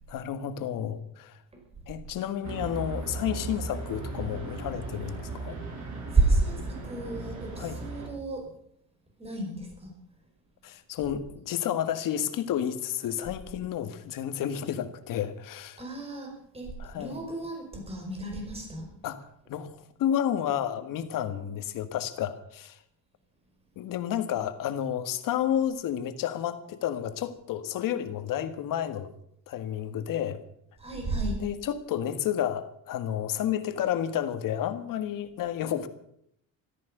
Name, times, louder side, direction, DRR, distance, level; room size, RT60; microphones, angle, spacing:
voice 1, 0.1-1.4 1.9-5.6 6.6-6.7 7.6-7.8 10.6-15.8 16.8-17.2 19.0-19.2 19.5-22.8 23.7-29.1 29.5-30.4 31.4-35.9, left 10 dB, 65° left, 10 dB, 1.7 m, -31 dB
sound 1, 2.4-8.1, right 3 dB, 55° right, 5.3 m, -37 dB
voice 2, 6.1-8.4 9.2-9.9 15.8-18.9 30.8-31.4, right 3 dB, 15° right, 2 dB, 4.9 m, -30 dB
14.0 x 14.0 x 6.7 m, 0.71 s
cardioid pair, 150°, 35 cm